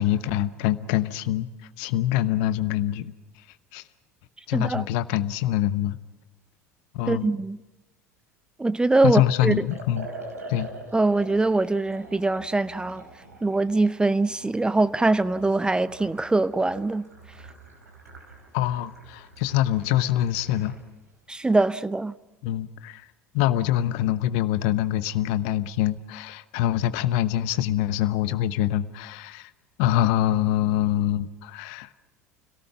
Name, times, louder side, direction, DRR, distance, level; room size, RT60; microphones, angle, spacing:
voice 1, 0.0-1.5 1.8-3.1 3.7-3.8 4.5-6.0 6.9-7.3 9.0-10.1 10.5-10.7 18.5-20.7 22.4-23.0 23.3-29.5 29.8-31.9, left 12 dB, 60° left, 1.0 m, -24 dB
voice 2, 4.5-4.8 7.1-7.6 8.6-9.7 10.9-13.0 13.4-17.1 21.3-22.1, right 2 dB, 10° right, 0.6 m, -23 dB
Liquid, 9.6-20.9, right 3 dB, 85° right, 5.3 m, -45 dB
29.5 x 18.0 x 5.9 m
figure-of-eight pair, 70°, 8 cm